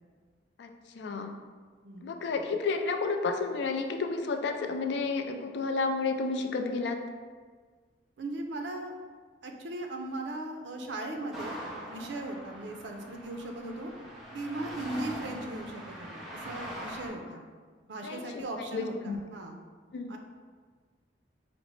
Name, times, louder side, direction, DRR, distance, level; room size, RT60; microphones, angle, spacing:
voice 1, 0.9-1.3 2.0-7.0 17.3-17.4 18.0-18.4 18.7-19.2 19.9-20.2, left 4 dB, 70° left, 5 dB, 0.3 m, -31 dB
voice 2, 8.2-8.9 9.4-13.9 14.3-17.4 17.9-19.6 20.1-20.2, right 2 dB, 85° right, 3 dB, 0.5 m, -38 dB
sound 1, 11.3-17.1, equal, ahead, 0.6 m, -42 dB
4.9 x 2.0 x 3.1 m, 1.5 s
head